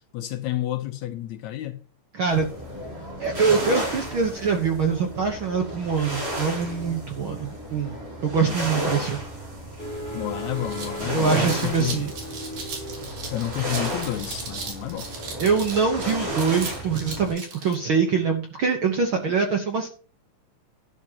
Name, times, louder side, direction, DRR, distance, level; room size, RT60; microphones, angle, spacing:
voice 1, 0.1-1.8 2.9-3.0 8.3-8.6 8.9-9.1 10.1-12.0 13.3-15.1, left 13 dB, 75° left, 2.0 m, -30 dB
voice 2, 2.1-2.5 3.2-7.9 8.2-9.2 11.1-12.1 15.4-19.9, right 5 dB, 60° right, 1.4 m, -24 dB
sound 1, 2.3-17.3, equal, 45° right, 6.1 m, -33 dB
sound 2, 9.8-16.1, right 1 dB, 15° right, 2.1 m, -39 dB
sound 3, 10.4-17.8, right 4 dB, 85° right, 4.2 m, -37 dB
12.0 x 11.5 x 2.9 m
omnidirectional pair, 3.7 m